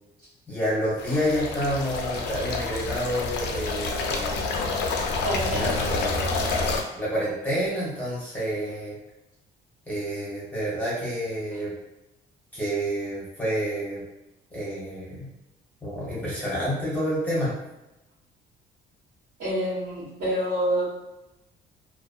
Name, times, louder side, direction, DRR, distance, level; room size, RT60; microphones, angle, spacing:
voice 1, 0.5-4.4 5.5-9.0 9.9-11.7 12.5-14.0 14.5-15.3 15.8-17.5, equal, 10° left, -8 dB, 0.7 m, -29 dB
sound 1, 1.0-6.8, left 3 dB, 80° left, 0.4 m, -28 dB
voice 2, 5.2-5.7 19.4-20.9, equal, 75° right, -10 dB, 1.2 m, -27 dB
2.5 x 2.2 x 2.3 m, 0.96 s
cardioid pair, 150°, 17 cm